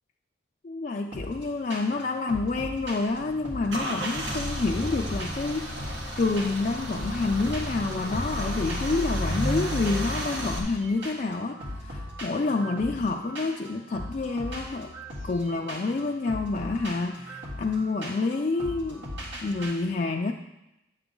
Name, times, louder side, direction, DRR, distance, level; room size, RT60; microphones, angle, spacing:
voice 1, 0.6-5.9 6.2-14.9 15.2-19.1 19.4-20.3, left 3 dB, 40° left, 0 dB, 0.4 m, -28 dB
sound 1, 1.1-1.4 1.7-2.0 2.3-4.3 4.6-6.1 6.4-6.7 6.9-9.0 9.3-19.7, equal, 85° right, 2.1 m, -39 dB
Car / Engine starting / Idling, 2.8-10.6, equal, 65° right, 1.4 m, -32 dB
9.5 x 7.0 x 3.8 m, 0.93 s
head